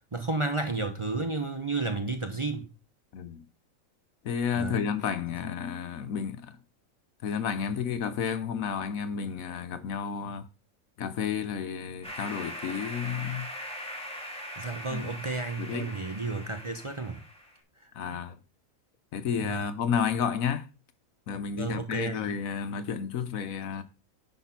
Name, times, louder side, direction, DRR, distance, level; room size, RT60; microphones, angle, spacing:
voice 1, 0.1-2.7 4.6-4.9 14.6-17.2 18.1-18.2 19.4-19.7 21.6-22.3, right 3 dB, 25° right, 0.7 m, -32 dB
voice 2, 4.2-6.6 7.2-10.5 11.0-13.5 14.9-15.0 15.6-15.9 17.9-18.4 19.1-20.7 21.3-23.8, left 7 dB, 80° left, 1.3 m, -31 dB
sound 1, 12.0-17.6, equal, 5° left, 2.4 m, -41 dB
10.0 x 4.1 x 5.8 m
omnidirectional pair, 1.4 m